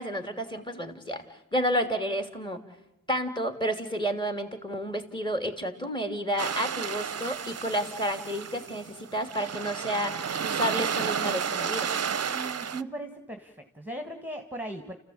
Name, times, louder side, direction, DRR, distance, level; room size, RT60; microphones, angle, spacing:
voice 1, 0.0-2.6 3.1-11.9, equal, 15° left, 8 dB, 2.9 m, -31 dB
sound 1, 6.4-12.8, right 7 dB, 45° right, 0.7 m, -32 dB
voice 2, 12.3-15.0, right 1 dB, 5° right, 6 dB, 1.7 m, -38 dB
29.0 x 15.0 x 8.8 m, 0.94 s
cardioid pair, 55°, 33 cm